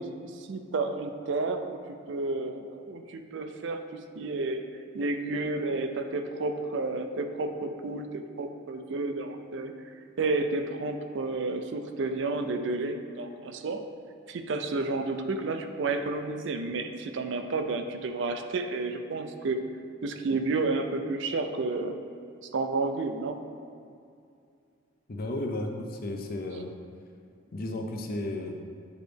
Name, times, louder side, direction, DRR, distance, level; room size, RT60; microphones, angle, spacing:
voice 1, 0.0-4.6 4.9-9.7 10.2-13.8 14.3-19.6 20.0-22.0 22.4-23.4, right 3 dB, 65° right, 7 dB, 0.4 m, -31 dB
voice 2, 25.1-26.7 27.5-28.5, left 1 dB, 50° left, 3 dB, 0.6 m, -33 dB
8.1 x 3.9 x 3.4 m, 2.4 s
head